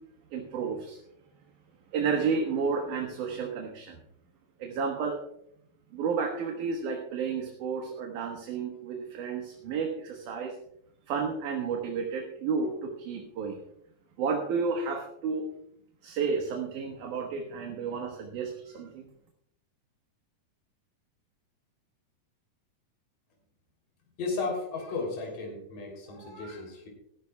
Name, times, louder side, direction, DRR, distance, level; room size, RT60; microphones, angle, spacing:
voice 1, 0.3-1.0 1.9-4.0 4.6-5.2 5.9-10.6 11.1-13.6 14.2-15.5 16.0-19.0, right 5 dB, 70° right, 1 dB, 2.8 m, -31 dB
voice 2, 24.2-26.9, left 3 dB, 70° left, 0 dB, 4.9 m, -34 dB
19.5 x 13.5 x 2.3 m, 0.75 s
omnidirectional pair, 3.9 m